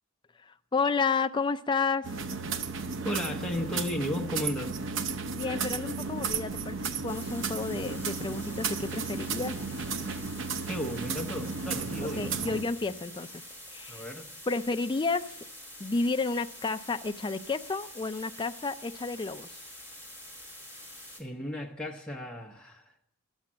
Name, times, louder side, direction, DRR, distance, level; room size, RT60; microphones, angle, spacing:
voice 1, 0.4-2.1 5.3-9.6 12.0-13.4 13.7-14.0 14.5-15.4 15.8-19.6, left 4 dB, 20° left, 9 dB, 0.4 m, -31 dB
sound 1, 2.0-12.6, right 5 dB, 60° right, 0.7 m, -34 dB
voice 2, 3.0-4.8 10.7-12.6 13.9-14.3 21.2-22.9, left 1 dB, 5° left, -1 dB, 0.9 m, -34 dB
sound 2, 7.1-21.2, left 1 dB, 15° right, 2.5 m, -47 dB
12.0 x 7.2 x 7.4 m, 0.77 s
head